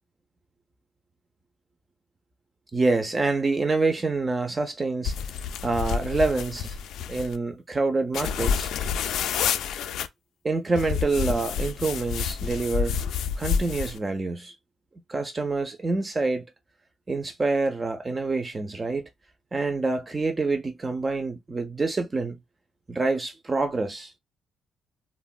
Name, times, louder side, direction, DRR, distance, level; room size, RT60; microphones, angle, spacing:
voice 1, 2.7-5.2 5.6-6.8 7.1-8.7 10.4-13.0 13.4-14.5 15.1-16.4 17.1-19.1 19.5-22.4 22.9-24.1, right 3 dB, 20° right, 0.3 m, -26 dB
sound 1, 5.0-7.4 8.1-10.1 10.8-14.0, left 7 dB, 75° left, 0.3 m, -29 dB
3.3 x 2.1 x 2.2 m
cardioid pair, 125°, 0 cm